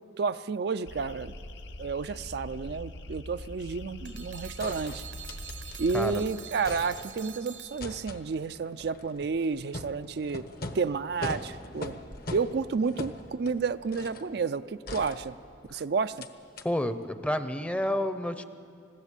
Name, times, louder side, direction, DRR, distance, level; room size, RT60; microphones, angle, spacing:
voice 1, 0.2-1.3 1.8-5.0 5.8-10.4 10.7-11.9 12.3-15.3 15.7-16.3, right 5 dB, 60° right, 11 dB, 0.4 m, -31 dB
sound 1, 0.9-6.3, left 1 dB, 80° left, 0.9 m, -43 dB
sound 2, 4.0-8.3, right 9 dB, 80° right, 1.1 m, -46 dB
sound 3, 4.1-4.2 4.6-6.1 6.4-7.4 7.8-14.3 14.9-15.7 16.2-16.3 16.6-16.7, left 2 dB, 55° left, 1.1 m, -41 dB
voice 2, 16.6-18.4, left 1 dB, 5° left, 10 dB, 0.7 m, -30 dB
21.0 x 15.5 x 8.3 m, 2.6 s
head